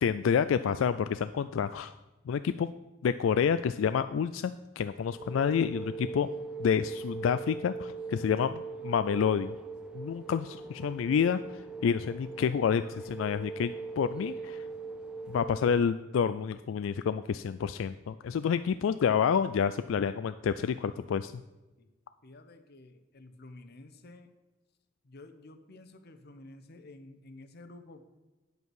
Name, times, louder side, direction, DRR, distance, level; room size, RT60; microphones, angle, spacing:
voice 1, 0.0-2.0 2.3-2.7 3.0-6.3 6.6-9.5 9.9-14.6 15.3-21.3, left 7 dB, 70° left, 12 dB, 0.3 m, -29 dB
sound 1, 5.0-15.7, right 4 dB, 5° right, 0.7 m, -41 dB
voice 2, 22.2-24.3 25.0-28.0, left 2 dB, 55° left, 8 dB, 0.9 m, -51 dB
9.3 x 8.0 x 4.8 m, 1.1 s
head